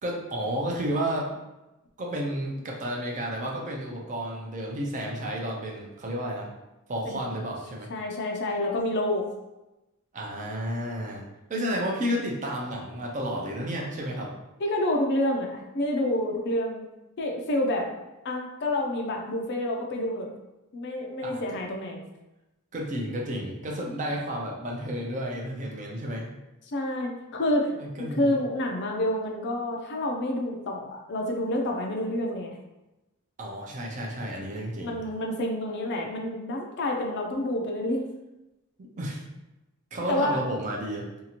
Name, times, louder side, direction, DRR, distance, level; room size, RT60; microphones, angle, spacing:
voice 1, 0.0-1.4 2.0-6.5 6.9-7.9 10.1-11.2 11.5-14.3 21.2-21.6 22.7-26.3 27.7-28.4 33.4-35.0 38.8-39.2 39.9-41.1, equal, 35° right, -1 dB, 0.5 m, -32 dB
voice 2, 7.9-9.3 14.6-16.9 17.2-17.9 18.2-20.3 20.7-22.0 26.7-27.7 28.2-32.5 34.8-38.0 40.1-40.4, left 1 dB, 50° left, 2 dB, 0.4 m, -28 dB
2.8 x 2.4 x 2.8 m, 1.0 s
head